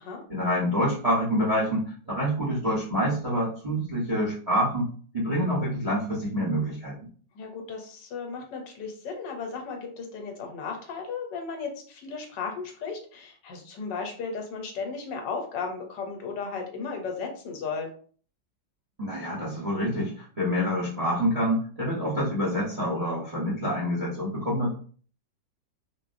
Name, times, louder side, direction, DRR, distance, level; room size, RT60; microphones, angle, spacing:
voice 1, 0.3-4.9 5.1-6.9 19.0-24.7, equal, 30° right, -5 dB, 0.7 m, -27 dB
voice 2, 7.3-17.9, left 5 dB, 75° left, 3 dB, 1.4 m, -35 dB
3.7 x 2.2 x 2.5 m, 0.43 s
omnidirectional pair, 1.9 m